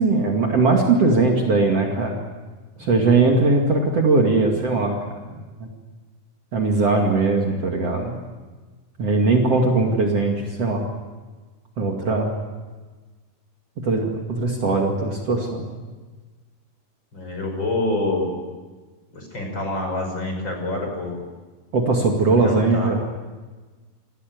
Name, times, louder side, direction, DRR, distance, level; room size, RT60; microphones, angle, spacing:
voice 1, 0.0-2.2 2.8-5.1 5.6-5.7 6.5-8.2 9.0-10.9 11.8-12.3 13.8-15.7 21.7-23.0, right 3 dB, 45° right, 1 dB, 3.0 m, -20 dB
voice 2, 2.8-3.1 17.1-18.3 19.1-21.2 22.3-22.9, left 2 dB, 30° left, 2 dB, 6.0 m, -27 dB
28.0 x 17.0 x 9.4 m, 1.3 s
omnidirectional pair, 4.2 m